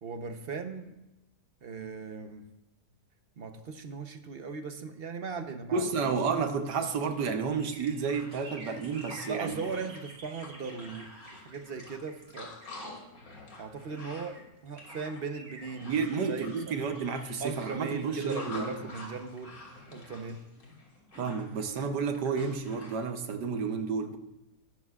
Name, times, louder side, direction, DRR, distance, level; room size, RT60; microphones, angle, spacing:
voice 1, 0.0-1.0 1.6-2.5 3.4-6.1 9.2-11.1 11.4-12.5 13.6-15.9 16.3-16.5 16.7-16.8 17.4-19.6 19.9-20.5, right 5 dB, 45° right, 7 dB, 1.0 m, -38 dB
voice 2, 5.7-9.6 15.8-18.8 21.2-24.2, right 5 dB, 85° right, 6 dB, 1.6 m, -31 dB
sound 1, 6.5-13.2 13.8-13.9 14.1-19.9 20.2-20.3, right 1 dB, 60° right, 2.9 m, -52 dB
sound 2, 7.9-23.0, left 2 dB, 60° left, 3.1 m, -48 dB
20.5 x 12.0 x 2.4 m, 0.94 s
omnidirectional pair, 1.8 m